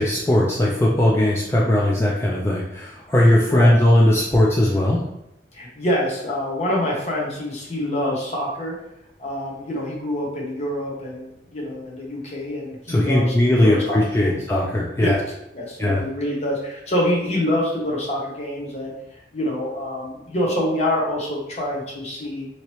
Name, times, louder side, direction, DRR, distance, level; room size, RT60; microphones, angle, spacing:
voice 1, 0.0-5.0 12.9-15.2 15.8-16.0, left 1 dB, 15° left, -4 dB, 0.3 m, -18 dB
voice 2, 5.5-8.7 9.2-13.3 13.6-14.4 15.0-15.2 15.5-18.9 19.3-22.5, left 1 dB, 35° left, -3 dB, 0.8 m, -26 dB
3.0 x 2.8 x 2.9 m, 0.84 s
head